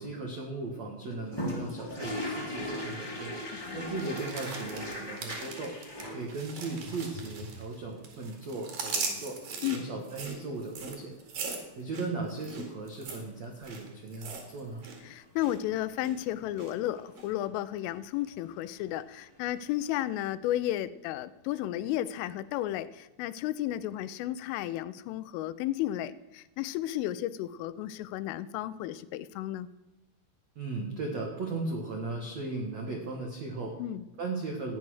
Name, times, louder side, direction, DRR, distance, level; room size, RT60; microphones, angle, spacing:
voice 1, 0.0-3.4 3.7-5.7 6.1-9.4 9.7-11.1 11.8-14.8 30.5-33.8 34.2-34.8, right 3 dB, 80° right, 1 dB, 1.5 m, -37 dB
sound 1, 1.1-6.2 6.8-7.8 9.8-9.9 10.2-10.3 12.5-12.8 18.7-18.8 19.0-19.1, left 1 dB, 20° left, 0.6 m, -38 dB
voice 2, 3.5-3.9 9.6-9.8 15.0-29.7 33.8-34.0, left 13 dB, 85° left, 14 dB, 3.2 m, -33 dB
sound 2, 4.0-7.8 8.0-15.0 15.2-15.6 16.0-16.7 17.2-17.3, right 4 dB, 55° right, 3.3 m, -40 dB
15.0 x 9.8 x 6.2 m, 0.99 s
omnidirectional pair, 5.6 m